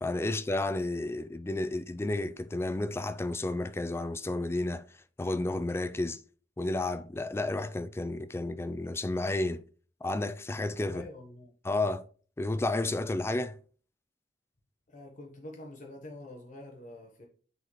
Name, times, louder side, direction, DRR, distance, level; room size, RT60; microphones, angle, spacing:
voice 1, 0.0-4.8 5.2-6.2 6.6-9.6 10.0-11.0 11.6-12.1 12.4-13.6, left 2 dB, 15° left, 0.3 m, -31 dB
voice 2, 10.9-11.5 14.9-17.3, left 1 dB, 45° left, 1.1 m, -46 dB
9.1 x 4.0 x 3.0 m
head